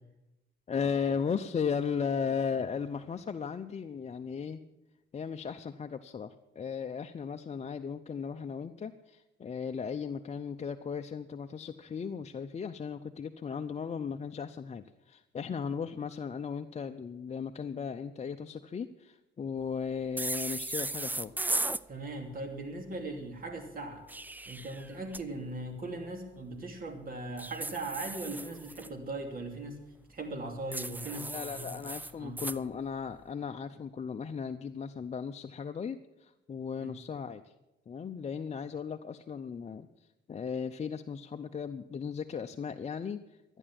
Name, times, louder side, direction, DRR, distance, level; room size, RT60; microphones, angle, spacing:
voice 1, 0.7-4.6 5.1-21.3 31.3-37.5 37.9-39.9 40.3-43.6, left 6 dB, 35° left, 6 dB, 0.6 m, -36 dB
sound 1, 20.2-21.8 23.9-25.2 27.4-28.9 30.7-32.6, right 2 dB, 10° right, 0.4 m, -36 dB
voice 2, 21.9-24.1 24.5-29.8 30.1-31.8 32.2-32.4 36.8-36.9, right 2 dB, 45° right, 4 dB, 2.9 m, -39 dB
13.0 x 9.9 x 7.6 m, 0.97 s
cardioid pair, 90°, 20 cm